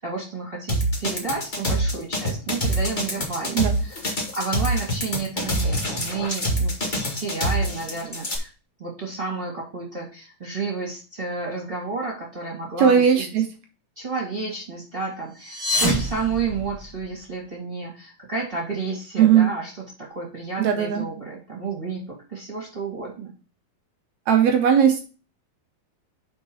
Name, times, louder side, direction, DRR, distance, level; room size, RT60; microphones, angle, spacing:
voice 1, 0.0-4.1 4.3-8.5 8.8-13.3 13.9-23.3, right 4 dB, 20° right, -4 dB, 1.7 m, -31 dB
sound 1, 0.7-8.4, equal, 35° left, 0.8 m, -25 dB
voice 2, 12.8-13.5 19.2-19.5 20.6-21.0 24.3-25.0, right 8 dB, 70° right, 4 dB, 1.8 m, -17 dB
sound 2, 15.3-17.2, left 1 dB, 10° left, 1.4 m, -27 dB
5.2 x 4.9 x 6.3 m, 0.35 s
omnidirectional pair, 4.1 m